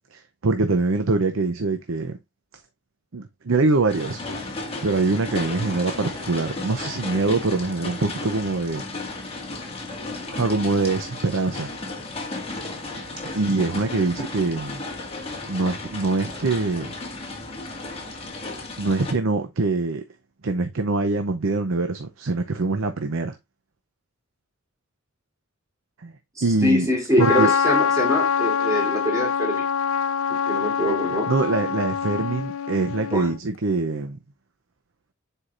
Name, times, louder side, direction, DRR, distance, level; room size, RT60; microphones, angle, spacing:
voice 1, 0.1-2.2 3.1-4.2 4.8-8.8 10.3-11.7 13.3-14.8 15.5-16.9 18.8-20.0 20.4-23.4 26.0-26.1 26.4-26.9 27.2-27.5 31.3-34.2, right 3 dB, 75° right, 0.7 m, -24 dB
sound 1, 3.9-19.1, left 2 dB, 30° left, 1.9 m, -34 dB
voice 2, 26.4-29.7 30.5-31.3 33.1-33.3, left 1 dB, 15° right, 3.5 m, -24 dB
Trumpet, 27.2-33.4, left 7 dB, 85° left, 0.5 m, -24 dB
9.8 x 4.6 x 2.5 m
head